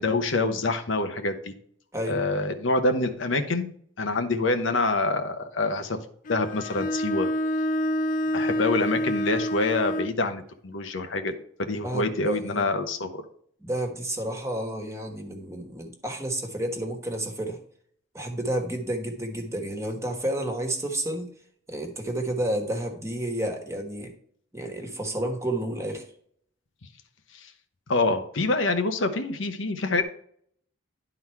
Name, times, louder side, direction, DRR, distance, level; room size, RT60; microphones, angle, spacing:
voice 1, 0.0-1.5 2.1-6.0 6.3-7.3 8.3-11.3 11.6-13.2 27.4-27.5 27.9-30.0, left 2 dB, 85° left, 7 dB, 0.9 m, -26 dB
Bowed string instrument, 6.3-10.2, equal, 45° left, 0.5 m, -27 dB
voice 2, 11.8-12.7 13.6-17.6 18.1-21.3 21.7-24.1 24.5-26.0, right 1 dB, 15° right, 3 dB, 1.3 m, -30 dB
11.0 x 3.9 x 4.6 m, 0.63 s
head